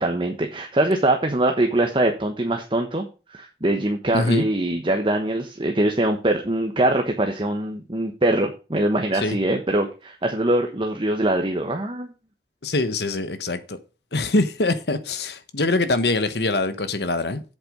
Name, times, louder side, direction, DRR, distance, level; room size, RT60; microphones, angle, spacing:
voice 1, 0.0-12.1, right 1 dB, 30° right, 1.1 m, -23 dB
voice 2, 4.1-4.4 9.2-9.4 12.6-13.8 14.1-17.4, left 2 dB, 65° left, 1.2 m, -23 dB
8.0 x 7.8 x 5.1 m
head